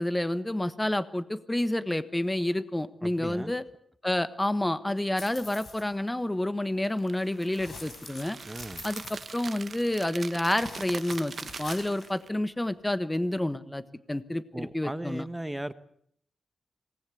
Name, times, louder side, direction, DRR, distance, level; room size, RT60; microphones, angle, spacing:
voice 1, 0.0-3.6 4.0-8.4 8.8-9.0 9.3-13.8 14.1-15.2, left 1 dB, 10° left, 13 dB, 1.3 m, -29 dB
voice 2, 3.0-3.5 8.5-8.8 14.5-15.7, right 1 dB, 10° right, 12 dB, 1.1 m, -37 dB
sound 1, 5.2-5.9 7.5-9.9 10.5-12.1, left 3 dB, 55° left, 5.9 m, -45 dB
sound 2, 6.8-12.3, right 5 dB, 50° right, 1.1 m, -43 dB
26.5 x 19.5 x 8.4 m, 0.66 s
wide cardioid pair, 110°, 0 cm